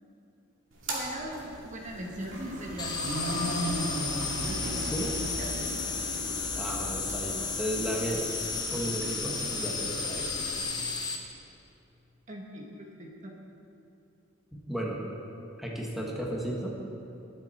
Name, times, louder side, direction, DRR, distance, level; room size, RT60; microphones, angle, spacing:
sound 1, 0.7-10.6, equal, 85° right, 2.4 m, -37 dB
voice 1, 0.9-3.8 4.4-5.8 12.3-13.3, equal, 40° right, 0 dB, 1.3 m, -41 dB
sound 2, 2.8-11.2, left 5 dB, 20° left, 1.0 m, -33 dB
voice 2, 4.7-5.1 6.5-8.2 8.7-10.3 14.5-15.0 15.6-16.7, right 1 dB, ahead, -3 dB, 1.5 m, -34 dB
20.0 x 7.4 x 4.3 m, 2.8 s
head